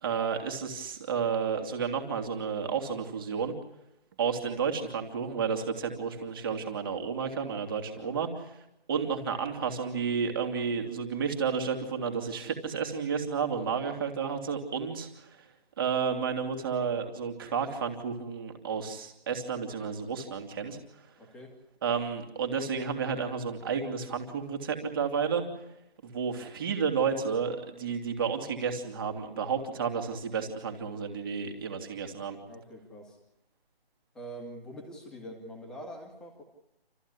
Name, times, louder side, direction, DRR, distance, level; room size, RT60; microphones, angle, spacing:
voice 1, 0.0-3.5 4.2-8.3 8.9-15.4 15.8-21.0 21.8-25.4 26.0-32.4, right 6 dB, 20° right, 4 dB, 3.0 m, -31 dB
voice 2, 21.2-21.5 32.5-33.2 34.1-36.4, equal, ahead, 1 dB, 2.1 m, -44 dB
28.5 x 15.0 x 9.9 m, 0.82 s
figure-of-eight pair, 170°, 31 cm